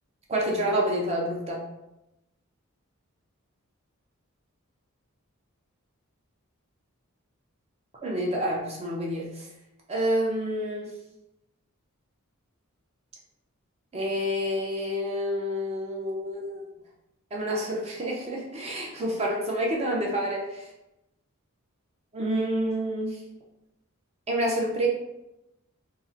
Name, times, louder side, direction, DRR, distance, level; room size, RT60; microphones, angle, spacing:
voice 1, 0.3-1.6 8.0-9.5 9.9-10.9 13.9-16.6 17.3-20.6 22.1-23.2 24.3-24.9, equal, 30° right, -2 dB, 0.5 m, -28 dB
2.7 x 2.0 x 2.5 m, 0.92 s
head